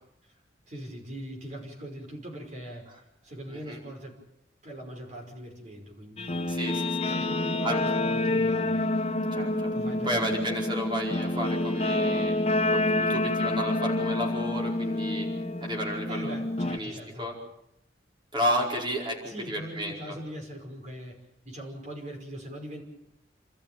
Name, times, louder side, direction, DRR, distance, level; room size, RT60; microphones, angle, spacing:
voice 1, 0.7-2.9 3.2-4.2 4.6-6.5 7.1-8.7 9.7-10.5 16.1-17.3 19.2-22.8, right 1 dB, 40° right, 2 dB, 5.5 m, -41 dB
Guitar, 6.2-16.8, left 2 dB, 35° left, 0.9 m, -28 dB
voice 2, 6.5-7.0 7.6-7.8 9.3-9.7 10.0-12.3 12.7-15.3 15.6-16.3 16.7-17.4 18.3-20.1, equal, 25° right, 0 dB, 4.9 m, -32 dB
28.0 x 13.5 x 8.9 m, 0.81 s
head